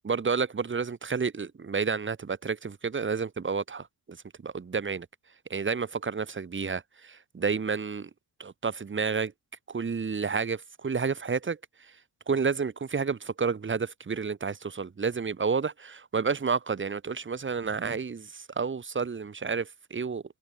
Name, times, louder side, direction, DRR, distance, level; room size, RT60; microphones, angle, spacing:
voice 1, 0.0-4.2 4.4-5.1 5.5-8.1 8.4-9.3 9.7-11.6 12.3-20.2, right 5 dB, 30° right, 2.1 m, -30 dB
open air
cardioid pair, 125°, 40 cm